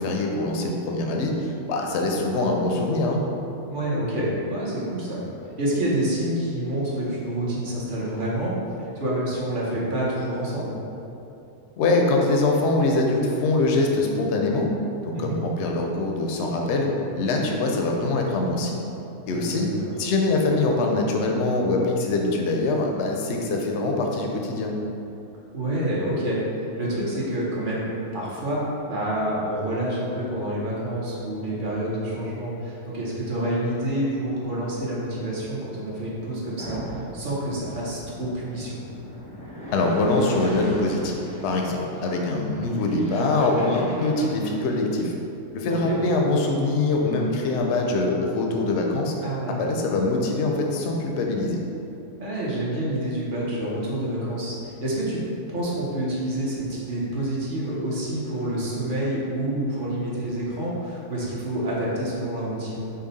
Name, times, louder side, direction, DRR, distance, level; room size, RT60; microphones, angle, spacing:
voice 1, 0.0-3.2 11.8-14.7 15.0-16.9 17.2-18.8 19.3-19.7 20.0-24.7 39.7-45.1 45.5-49.1 49.5-51.6, left 2 dB, 65° left, 1 dB, 0.7 m, -23 dB
voice 2, 3.7-5.2 5.6-10.8 15.1-15.4 19.2-19.8 25.5-27.9 28.1-38.8 45.7-46.0 49.2-49.6 52.2-55.2 55.5-62.9, right 1 dB, 40° right, -6 dB, 0.9 m, -28 dB
sound 1, 36.6-44.6, equal, 10° left, 0.4 m, -38 dB
5.5 x 2.3 x 4.0 m, 2.8 s
omnidirectional pair, 1.6 m